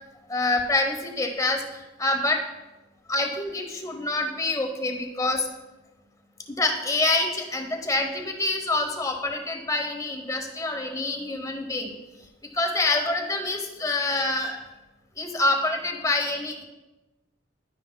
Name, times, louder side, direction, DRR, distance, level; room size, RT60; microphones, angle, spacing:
voice 1, 0.3-2.4 3.1-5.5 6.5-12.0 12.5-14.6 15.2-16.6, left 2 dB, 15° left, 4 dB, 0.8 m, -26 dB
11.0 x 9.5 x 2.3 m, 1.1 s
head